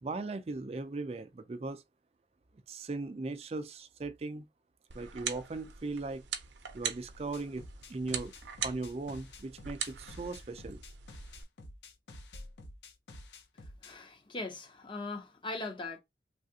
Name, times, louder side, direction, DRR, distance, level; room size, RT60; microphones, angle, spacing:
voice 1, 0.0-1.8 2.7-4.5 4.9-6.2 6.7-7.6 7.9-8.3 8.6-10.8, right 3 dB, 35° right, 0.3 m, -38 dB
sound 1, 4.9-11.4, right 8 dB, 80° right, 0.6 m, -41 dB
sound 2, 7.3-13.9, left 1 dB, 70° left, 0.6 m, -49 dB
voice 2, 13.6-16.0, left 2 dB, 25° left, 0.6 m, -40 dB
3.3 x 2.4 x 2.7 m
head